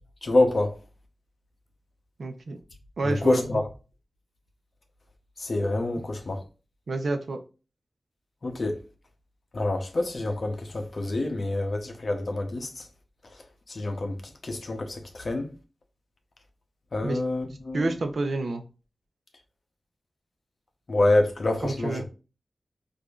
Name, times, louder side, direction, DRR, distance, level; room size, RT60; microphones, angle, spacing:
voice 1, 0.2-0.7 3.1-3.6 5.4-6.4 8.4-8.7 9.5-12.7 13.7-14.1 14.4-15.0 15.2-15.5 16.9-17.9 20.9-22.1, left 2 dB, 55° left, 0.7 m, -26 dB
voice 2, 2.2-2.6 3.0-3.6 6.9-7.4 17.0-17.2 17.7-18.6 21.6-22.1, right 2 dB, 70° right, 0.6 m, -29 dB
4.9 x 2.6 x 2.3 m
wide cardioid pair, 70°, 0 cm